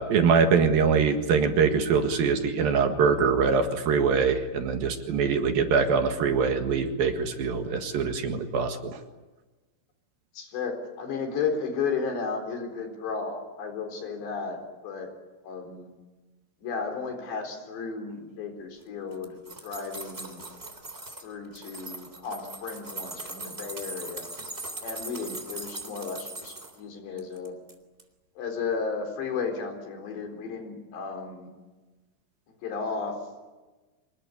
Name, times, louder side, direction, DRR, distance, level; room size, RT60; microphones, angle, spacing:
voice 1, 0.0-9.0, right 5 dB, 65° right, 6 dB, 3.3 m, -23 dB
voice 2, 10.3-14.6 14.8-15.1 15.4-15.9 16.6-19.4 19.6-20.4 21.2-24.3 24.8-27.6 28.4-31.5 32.5-33.2, left 5 dB, 80° left, 4 dB, 6.3 m, -33 dB
sound 1, 19.1-21.2 21.5-26.7 27.2-27.7 28.0-28.1, right 2 dB, 15° right, 3.1 m, -40 dB
26.5 x 20.0 x 9.9 m, 1.2 s
omnidirectional pair, 5.0 m